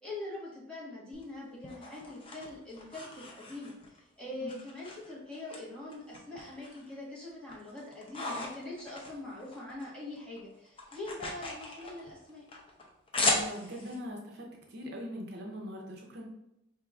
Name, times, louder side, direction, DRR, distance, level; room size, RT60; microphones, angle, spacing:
voice 1, 0.0-12.4, left 2 dB, 5° left, -7 dB, 1.2 m, -43 dB
sound 1, 1.1-4.0 4.5-5.6 5.9-6.9 7.3-9.9 10.2-14.0, left 2 dB, 30° left, 0.6 m, -37 dB
voice 2, 13.2-16.2, equal, 55° right, 0 dB, 0.6 m, -41 dB
4.6 x 3.0 x 2.4 m, 0.84 s
head